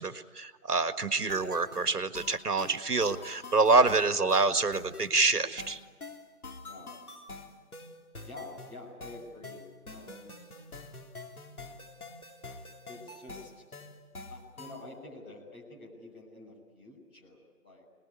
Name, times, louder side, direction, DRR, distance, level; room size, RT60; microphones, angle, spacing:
voice 1, 0.0-5.8, right 3 dB, 85° right, 10 dB, 1.7 m, -26 dB
sound 1, 1.3-14.9, left 3 dB, 70° left, 3.7 m, -46 dB
voice 2, 6.6-6.9 8.2-10.5 12.5-13.6 14.3-17.8, left 2 dB, 15° left, -5 dB, 6.3 m, -48 dB
27.0 x 20.5 x 9.6 m, 1.5 s
figure-of-eight pair, 165°, 45 cm